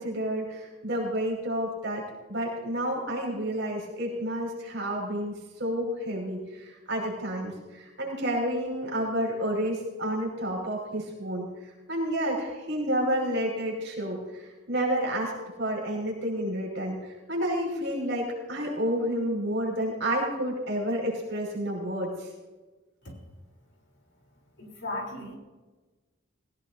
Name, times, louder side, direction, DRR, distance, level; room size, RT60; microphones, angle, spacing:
voice 1, 0.0-2.0 2.3-11.5 11.9-15.3 15.6-22.3, equal, 60° right, -2 dB, 5.4 m, -30 dB
voice 2, 24.6-25.4, left 1 dB, 60° left, 0 dB, 3.6 m, -36 dB
18.0 x 17.5 x 2.7 m, 1.2 s
head